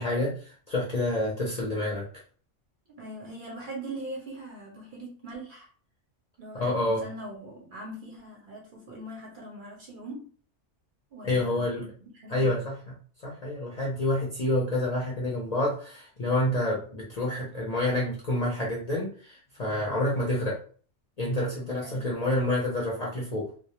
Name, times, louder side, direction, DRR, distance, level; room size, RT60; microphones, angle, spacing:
voice 1, 0.0-2.0 6.5-7.0 11.2-11.9 12.3-12.8 13.2-20.6 21.2-23.5, left 1 dB, 50° left, -4 dB, 0.5 m, -28 dB
voice 2, 3.0-5.7 6.4-10.2 11.1-12.6 20.1-20.2 21.8-22.1, right 1 dB, 55° right, -2 dB, 0.6 m, -41 dB
2.2 x 2.0 x 2.8 m, 0.43 s
omnidirectional pair, 1.3 m